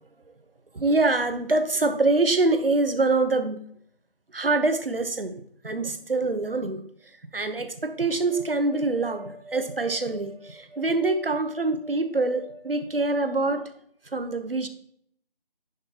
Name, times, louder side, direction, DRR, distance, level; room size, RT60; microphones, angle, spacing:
voice 1, 0.7-3.6 4.3-6.8 7.3-13.7 14.1-14.7, right 2 dB, 75° right, 9 dB, 1.1 m, -25 dB
10.5 x 5.3 x 2.9 m, 0.65 s
figure-of-eight pair, 165°, 29 cm